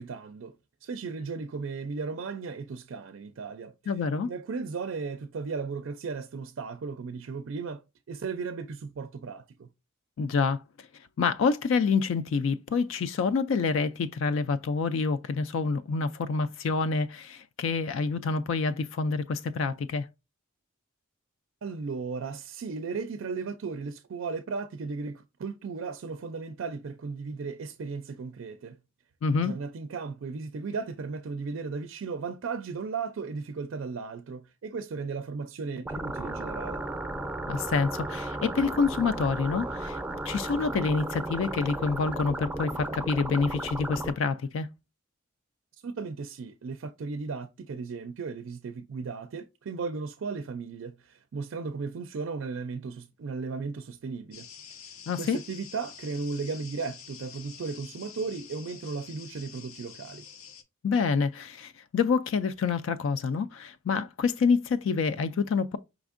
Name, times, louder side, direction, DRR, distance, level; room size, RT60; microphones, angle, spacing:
voice 1, 0.0-3.7 4.2-9.7 21.6-28.8 29.4-36.8 45.8-54.8 55.2-60.2, right 4 dB, 65° right, 0.4 m, -36 dB
voice 2, 3.9-4.3 10.2-10.9 11.2-20.1 29.2-29.5 37.5-40.0 40.3-44.7 55.1-55.4 60.8-65.8, left 4 dB, 65° left, 0.3 m, -27 dB
sound 1, 35.9-44.1, right 2 dB, 5° right, 0.5 m, -34 dB
sound 2, 54.3-60.6, left 7 dB, 90° left, 0.7 m, -47 dB
5.0 x 3.4 x 2.4 m
head